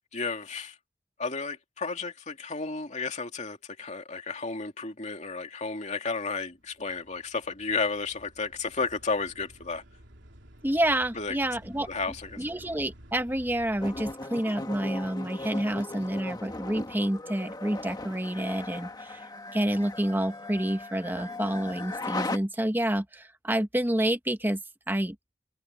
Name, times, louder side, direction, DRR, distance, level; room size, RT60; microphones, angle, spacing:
voice 1, 0.1-0.7 1.2-9.8 11.1-11.4 11.9-12.7, left 4 dB, 40° left, 2.7 m, -33 dB
sound 1, 6.6-14.2, right 1 dB, 80° right, 3.0 m, -52 dB
voice 2, 10.6-11.9 12.4-19.2 19.5-24.6 24.9-25.1, right 1 dB, 10° right, 1.4 m, -28 dB
sound 2, 13.8-22.4, left 2 dB, 20° left, 1.6 m, -38 dB
head